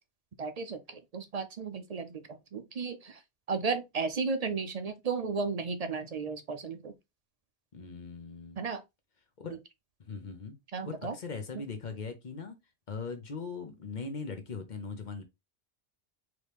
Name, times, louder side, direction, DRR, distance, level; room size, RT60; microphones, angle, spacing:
voice 1, 0.4-2.2 2.5-3.2 3.5-6.9 8.6-8.8 10.7-11.1, right 4 dB, 50° right, 0.5 m, -34 dB
voice 2, 7.7-8.6 9.4-9.6 10.1-10.6 10.8-12.6 12.9-15.2, left 4 dB, 45° left, 1.0 m, -40 dB
4.0 x 3.1 x 3.3 m
omnidirectional pair, 1.1 m